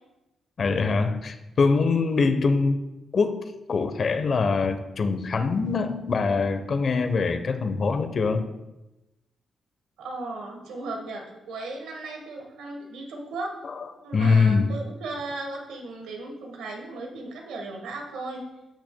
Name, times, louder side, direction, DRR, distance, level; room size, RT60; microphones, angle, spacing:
voice 1, 0.6-2.8 3.1-8.5 13.6-13.8 14.1-14.7, left 4 dB, 55° left, 9 dB, 0.8 m, -23 dB
voice 2, 10.0-13.6 14.0-18.5, right 2 dB, 90° right, 2 dB, 1.3 m, -36 dB
14.0 x 6.2 x 2.2 m, 0.98 s
cardioid pair, 65°, 0 cm